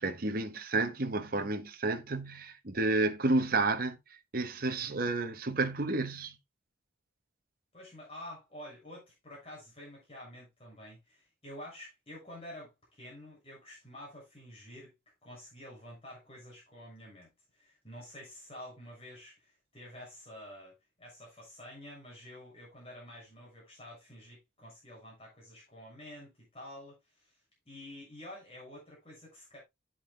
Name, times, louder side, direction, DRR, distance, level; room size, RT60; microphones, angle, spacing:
voice 1, 0.0-4.0 4.3-6.3, right 3 dB, 50° right, 1.0 m, -31 dB
voice 2, 4.6-4.9 7.7-14.9 15.2-27.4 27.7-29.6, left 1 dB, 30° left, 6.4 m, -49 dB
11.5 x 8.9 x 2.2 m
head